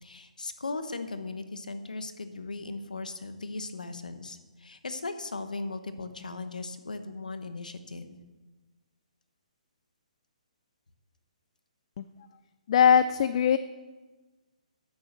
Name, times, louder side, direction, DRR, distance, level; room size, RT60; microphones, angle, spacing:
voice 1, 0.0-8.2, left 3 dB, 85° left, 10 dB, 1.1 m, -38 dB
voice 2, 12.7-13.6, left 8 dB, 50° left, 14 dB, 0.4 m, -21 dB
10.5 x 7.1 x 6.6 m, 1.3 s
figure-of-eight pair, 135°, 4 cm